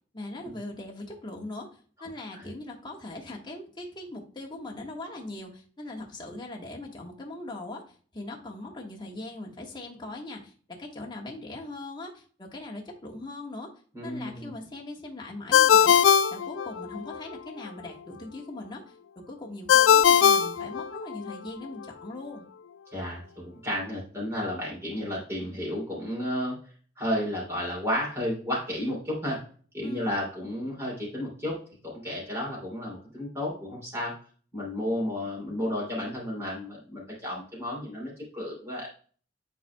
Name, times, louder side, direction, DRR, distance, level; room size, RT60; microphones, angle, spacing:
voice 1, 0.1-1.7 2.0-10.5 10.8-13.7 14.0-18.9 19.3-22.4 29.8-30.2, left 2 dB, 25° left, -1 dB, 1.4 m, -40 dB
voice 2, 13.9-14.5 22.9-26.6 27.0-29.4 29.7-31.6 31.8-34.1 34.5-38.9, left 1 dB, 15° right, -4 dB, 2.6 m, -32 dB
Ringtone, 15.5-17.2 19.7-21.4, left 8 dB, 80° left, 0.3 m, -20 dB
9.9 x 4.2 x 2.2 m, 0.42 s
head